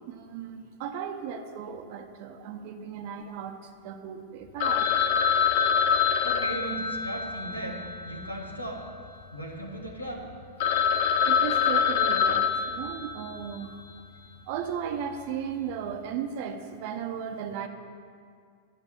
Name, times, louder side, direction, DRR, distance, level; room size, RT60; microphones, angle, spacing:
voice 1, 0.0-4.9 11.2-13.8 14.5-17.7, right 8 dB, 50° right, 7 dB, 0.9 m, -36 dB
Telephone, 4.6-8.9 9.2-9.3 9.9-10.0 10.3-10.4 10.6-13.6, left 7 dB, 50° left, 0.6 m, -25 dB
voice 2, 6.2-8.9 9.3-10.3, right 1 dB, 85° left, 1 dB, 1.4 m, -37 dB
11.0 x 5.6 x 8.7 m, 2.2 s
figure-of-eight pair, 90°, 0 cm